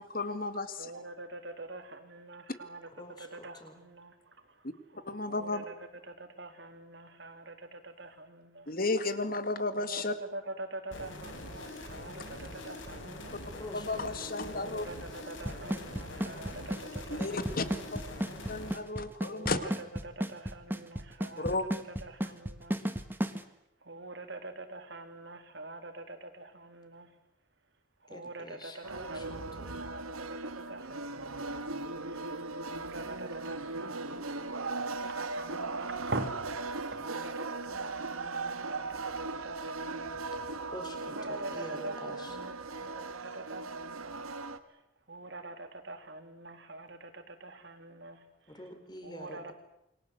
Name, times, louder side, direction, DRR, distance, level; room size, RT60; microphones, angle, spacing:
voice 1, 0.1-0.9 5.1-5.7 8.7-10.1 13.7-14.9 17.1-17.7 17.9-18.0 18.5-19.7 21.4-21.7, left 3 dB, 45° left, 11 dB, 2.1 m, -33 dB
voice 2, 0.8-2.9 3.2-4.6 4.9-5.7 6.1-8.7 9.9-13.4 14.5-17.9 19.2-19.7 20.0-21.6 22.0-22.8 23.8-27.1 28.0-31.5 32.0-40.2 41.1-44.3 45.1-48.2 49.0-49.5, right 2 dB, 55° right, 7 dB, 3.3 m, -45 dB
voice 3, 3.0-3.8 13.5-14.4 28.1-29.8 40.1-42.4 48.5-49.5, left 1 dB, 20° left, 7 dB, 3.9 m, -47 dB
sound 1, 10.9-18.7, left 1 dB, 65° left, 5.1 m, -44 dB
Drum kit / Snare drum / Bass drum, 15.5-23.4, equal, 10° right, 1.4 m, -33 dB
sound 2, 28.8-44.6, right 3 dB, 90° right, 1.7 m, -38 dB
28.5 x 23.5 x 8.1 m, 0.87 s
head